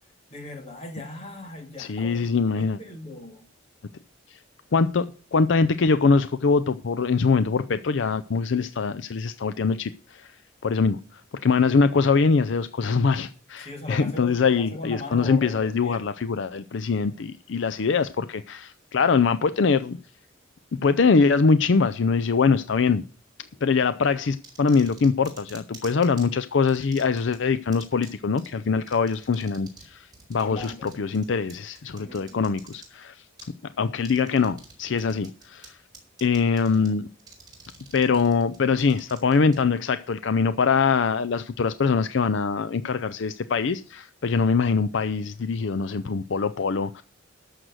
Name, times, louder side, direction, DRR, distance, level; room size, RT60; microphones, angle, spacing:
voice 1, 0.3-2.2 2.5-3.5 13.6-16.0 30.4-30.9 32.0-32.4, left 2 dB, 30° left, 2.5 m, -38 dB
voice 2, 1.8-2.8 4.3-4.4 4.7-10.4 10.6-20.0 20.8-23.0 23.6-33.2 33.8-35.8 36.2-37.1 37.9-47.0, left 5 dB, 65° left, 0.5 m, -23 dB
sound 1, 24.4-26.3 26.7-27.4 27.7-28.1 28.4-28.5 28.9-29.9 30.1-32.9 33.4-33.5 34.0-34.7 35.0-35.7 35.9-36.9 37.2-39.6, right 5 dB, 20° right, 4.2 m, -47 dB
13.5 x 6.6 x 6.3 m
head